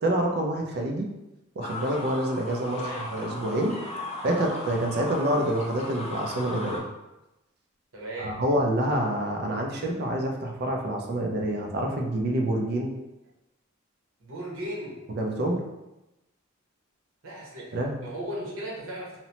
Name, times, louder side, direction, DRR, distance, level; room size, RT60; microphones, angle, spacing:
voice 1, 0.0-1.1 1.6-3.8 4.2-6.8 8.2-12.9 15.1-15.6 17.7-17.9, right 1 dB, 50° right, 1 dB, 0.4 m, -27 dB
sound 1, 1.6-6.8, left 1 dB, 30° left, 0.4 m, -36 dB
voice 2, 2.7-3.0 7.9-8.3 14.2-15.0 17.2-19.2, right 1 dB, 85° right, -4 dB, 0.9 m, -36 dB
2.9 x 2.0 x 2.8 m, 0.96 s
head